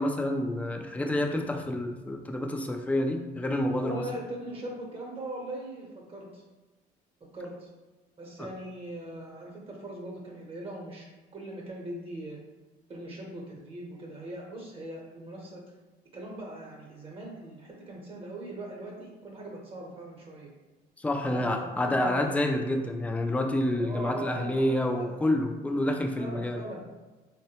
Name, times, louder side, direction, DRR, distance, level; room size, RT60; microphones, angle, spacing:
voice 1, 0.0-4.0 8.4-8.5 21.0-26.6, left 1 dB, 10° left, 3 dB, 0.3 m, -28 dB
voice 2, 3.7-6.4 7.3-7.7 8.2-11.1 11.3-12.4 12.9-15.6 16.1-20.5 21.2-22.5 23.7-25.3 26.2-26.8, right 1 dB, 35° right, -2 dB, 0.8 m, -40 dB
3.6 x 2.2 x 2.8 m, 1.2 s
cardioid pair, 110°, 17 cm